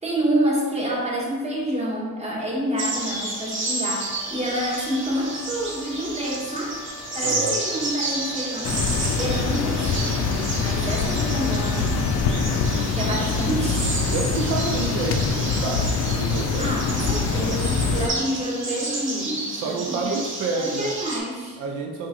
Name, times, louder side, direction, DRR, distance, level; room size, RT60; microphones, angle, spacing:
voice 1, 0.0-6.8 7.1-8.8 9.1-12.5 12.9-13.9 16.6-20.2 20.6-21.6, right 1 dB, 20° right, -4 dB, 1.2 m, -28 dB
sound 1, 2.8-21.2, right 2 dB, 40° right, 0.9 m, -31 dB
Wind instrument woodwind instrument, 4.0-13.5, left 4 dB, 15° left, 0.7 m, -44 dB
voice 2, 7.2-7.6 14.1-16.7 17.0-17.6 19.6-20.9 21.6-22.1, right 4 dB, 90° right, 2 dB, 0.5 m, -29 dB
sound 2, 8.6-18.1, left 5 dB, 60° left, 0.4 m, -24 dB
5.8 x 2.5 x 2.9 m, 1.4 s
cardioid pair, 90°, 30 cm